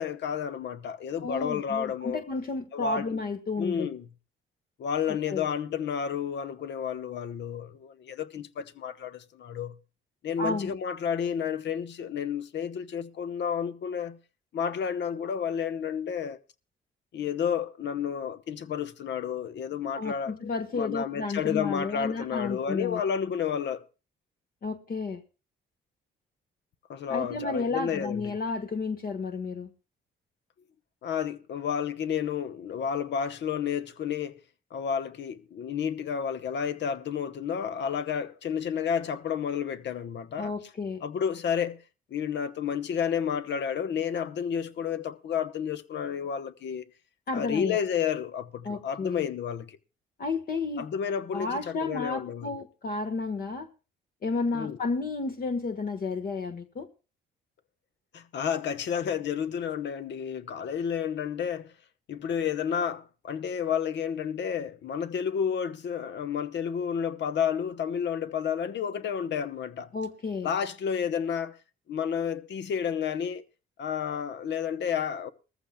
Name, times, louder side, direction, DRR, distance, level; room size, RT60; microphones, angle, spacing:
voice 1, 0.0-2.2 2.7-3.2 3.6-4.1 4.8-9.8 10.2-14.2 14.5-16.4 17.1-20.3 20.7-23.9 26.9-28.3 31.0-34.4 34.7-40.5 41.0-41.8 42.1-46.9 47.3-49.8 50.8-52.6 54.5-54.8 58.1-61.7 62.1-69.9 70.4-71.6 71.9-73.4 73.8-75.3, left 7 dB, 65° left, 0.9 m, -31 dB
voice 2, 1.2-3.9 5.1-5.5 10.4-10.7 19.9-23.0 24.6-25.2 27.1-29.7 40.4-41.0 47.3-47.8 48.6-49.2 50.2-50.9 51.3-53.7 54.2-56.9 69.9-70.5, left 3 dB, 50° left, 1.3 m, -32 dB
20.5 x 14.5 x 2.2 m
cardioid pair, 90°, 20 cm